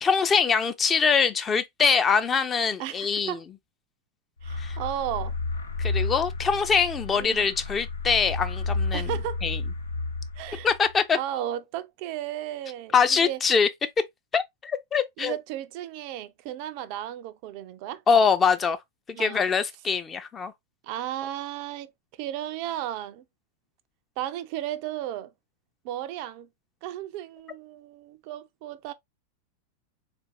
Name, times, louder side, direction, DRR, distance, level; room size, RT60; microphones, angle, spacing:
voice 1, 0.0-3.4 4.6-4.8 5.8-9.1 9.4-9.6 10.6-11.2 12.9-13.7 14.3-15.4 18.1-18.8 19.1-20.5, left 6 dB, 20° left, 0.4 m, -23 dB
voice 2, 2.8-3.4 4.4-5.3 7.2-7.5 8.9-9.4 10.4-10.7 11.1-13.4 15.2-18.0 19.1-19.5 20.8-21.9 22.2-23.2 24.2-25.3 25.8-26.5 26.8-28.9, right 12 dB, 45° right, 0.3 m, -34 dB
sound 1, 4.4-10.9, left 3 dB, 75° left, 0.5 m, -31 dB
3.8 x 2.5 x 2.5 m
figure-of-eight pair, 90°, 0 cm